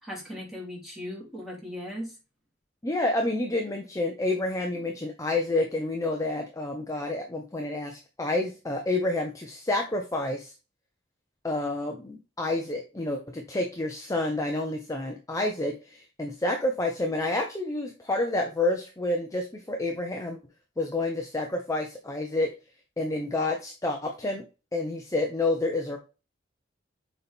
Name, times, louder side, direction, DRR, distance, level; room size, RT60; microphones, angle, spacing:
voice 1, 0.0-2.1, left 1 dB, ahead, -4 dB, 3.0 m, -38 dB
voice 2, 2.8-10.5 11.4-20.4 20.8-22.5 23.0-24.4 24.7-26.0, left 2 dB, 15° left, 2 dB, 0.8 m, -29 dB
6.5 x 4.2 x 3.5 m, 0.30 s
head